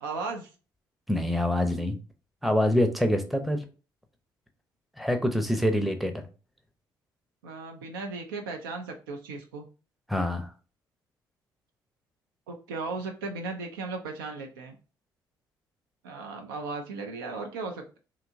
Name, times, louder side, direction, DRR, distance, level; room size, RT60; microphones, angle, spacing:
voice 1, 0.0-0.5 7.4-9.7 12.5-14.8 16.0-18.0, right 3 dB, 80° right, 3 dB, 0.4 m, -36 dB
voice 2, 1.1-2.0 2.4-3.6 5.0-6.2 10.1-10.5, left 1 dB, ahead, 6 dB, 0.6 m, -25 dB
2.8 x 2.2 x 2.5 m, 0.34 s
figure-of-eight pair, 45°, 11 cm